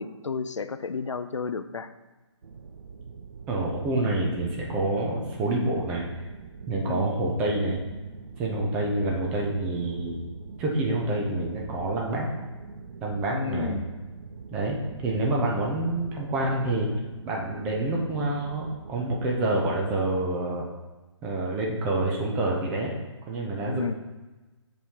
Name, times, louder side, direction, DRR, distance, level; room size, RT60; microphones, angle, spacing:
voice 1, 0.0-1.9 6.9-7.1 13.3-13.9 23.7-23.9, left 5 dB, 75° left, 10 dB, 0.4 m, -31 dB
sound 1, 2.4-19.4, right 5 dB, 60° right, 0.5 m, -44 dB
voice 2, 3.5-6.1 6.7-7.8 8.4-10.2 10.6-12.3 13.0-13.8 14.5-16.9 17.2-20.7 21.2-22.9 23.3-23.9, right 2 dB, 5° right, -1 dB, 0.3 m, -27 dB
6.7 x 3.1 x 5.4 m, 1.1 s
figure-of-eight pair, 140°, 16 cm